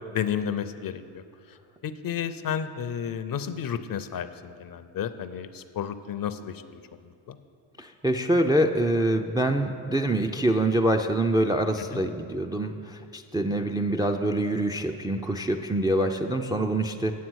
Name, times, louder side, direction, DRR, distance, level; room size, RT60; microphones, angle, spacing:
voice 1, 0.1-1.0 1.8-6.6 7.3-7.4 11.9-12.0, left 8 dB, 45° left, 11 dB, 0.6 m, -31 dB
voice 2, 7.8-17.1, right 1 dB, 10° right, 4 dB, 0.4 m, -25 dB
9.3 x 7.2 x 6.2 m, 2.4 s
supercardioid pair, 70°, 49 cm